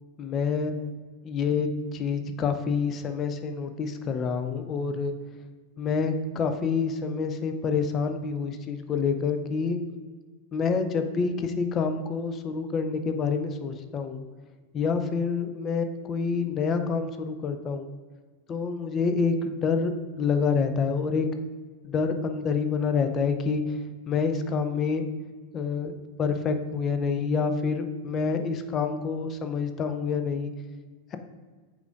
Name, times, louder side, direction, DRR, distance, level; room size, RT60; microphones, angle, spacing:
voice 1, 0.2-0.9 1.2-5.1 5.8-9.8 10.5-14.2 14.7-17.9 18.5-19.9 20.2-21.3 21.8-23.8 24.1-25.0 25.5-25.9 26.2-30.5 31.1-31.2, left 5 dB, 30° left, 7 dB, 0.5 m, -27 dB
8.0 x 5.0 x 2.4 m, 1.4 s
figure-of-eight pair, 90°, 0 cm